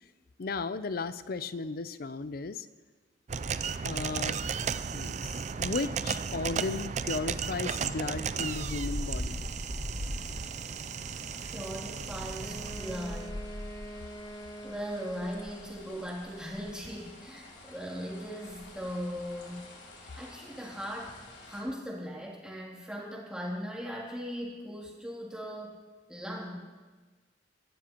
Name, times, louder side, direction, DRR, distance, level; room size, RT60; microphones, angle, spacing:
voice 1, 0.4-2.7 3.8-4.4 4.9-9.4, left 4 dB, 55° left, 13 dB, 0.5 m, -35 dB
sound 1, 3.3-13.2, right 6 dB, 40° right, 0.4 m, -35 dB
sound 2, 7.8-21.6, left 1 dB, 80° left, 3.2 m, -43 dB
voice 2, 11.4-13.4 14.6-19.6 20.2-21.2 21.5-25.8 26.1-26.6, equal, 5° right, -4 dB, 2.9 m, -39 dB
Wind instrument woodwind instrument, 12.4-16.1, right 1 dB, 25° left, 1.2 m, -45 dB
22.5 x 12.5 x 3.0 m, 1.3 s
head